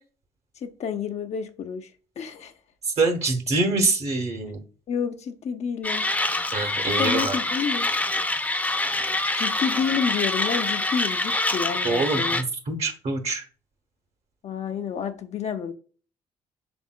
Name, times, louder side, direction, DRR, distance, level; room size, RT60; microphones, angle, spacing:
voice 1, 0.6-1.9 2.2-2.5 4.9-6.1 7.0-7.9 9.3-12.4 14.4-15.7, left 7 dB, 50° left, 0.6 m, -29 dB
voice 2, 3.0-4.6 6.5-7.4 11.8-13.4, right 3 dB, 50° right, 1.1 m, -25 dB
Mechanisms, 5.8-12.4, left 2 dB, 10° left, 0.7 m, -25 dB
6.1 x 3.5 x 2.3 m
hypercardioid pair, 55°, 14 cm